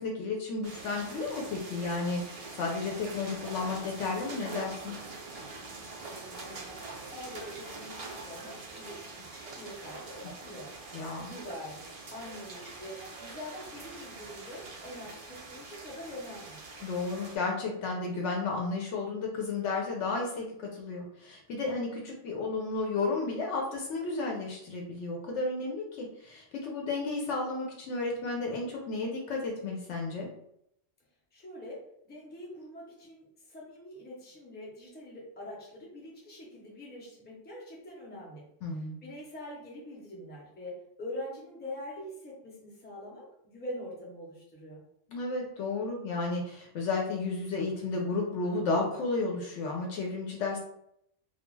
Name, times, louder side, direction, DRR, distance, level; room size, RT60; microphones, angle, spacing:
voice 1, 0.0-5.0 10.9-11.3 16.8-30.3 38.6-39.0 45.1-50.6, left 3 dB, 75° left, -1 dB, 0.9 m, -33 dB
sound 1, 0.6-17.4, right 3 dB, 60° right, 0.4 m, -44 dB
voice 2, 6.1-6.7 7.1-10.7 11.2-16.6 31.3-31.8 32.0-44.8, left 1 dB, 10° left, -4 dB, 0.5 m, -44 dB
2.3 x 2.2 x 3.1 m, 0.74 s
omnidirectional pair, 1.2 m